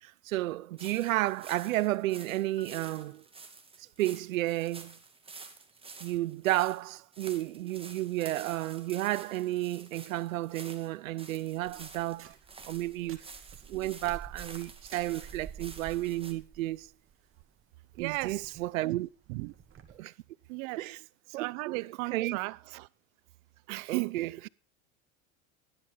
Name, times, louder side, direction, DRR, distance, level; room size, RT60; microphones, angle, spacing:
voice 1, 0.0-3.2 3.8-5.0 6.0-12.4 12.7-13.3 13.7-16.9 18.0-19.1 19.9-20.1 20.8-21.0 21.3-21.8 22.1-22.4 23.9-24.5, right 16 dB, 90° right, 0.6 m, -32 dB
sound 1, 0.8-16.3, right 4 dB, 15° right, 2.4 m, -50 dB
sound 2, 2.6-4.0, left 3 dB, 10° left, 1.2 m, -60 dB
sound 3, 11.6-20.0, right 7 dB, 30° right, 2.5 m, -50 dB
voice 2, 18.0-18.6 18.9-19.0 19.3-19.5 20.5-20.9 21.4-22.9 23.7-24.5, right 25 dB, 60° right, 0.8 m, -36 dB
17.0 x 11.0 x 5.5 m
hypercardioid pair, 105°, 39 cm